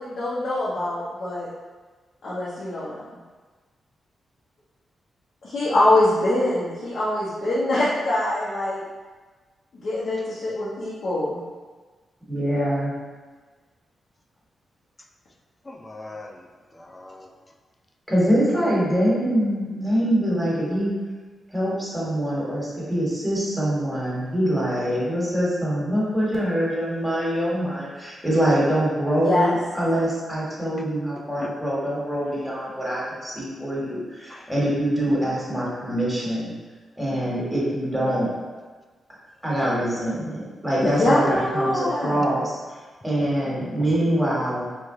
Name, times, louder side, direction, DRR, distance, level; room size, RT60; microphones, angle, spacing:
voice 1, 0.0-1.5 2.2-3.0 5.4-8.8 9.8-11.4 29.2-29.5 40.8-42.2, left 1 dB, 70° left, -9 dB, 0.7 m, -23 dB
voice 2, 12.3-12.9 18.1-20.9 21.5-36.5 37.0-38.3 39.4-42.5 43.0-44.7, equal, 5° right, -6 dB, 1.3 m, -24 dB
voice 3, 15.6-16.5 16.7-17.3 31.2-31.6 34.3-34.5 43.6-44.0, left 2 dB, 25° left, 3 dB, 0.4 m, -39 dB
3.1 x 2.2 x 3.6 m, 1.3 s
cardioid pair, 65°, 0 cm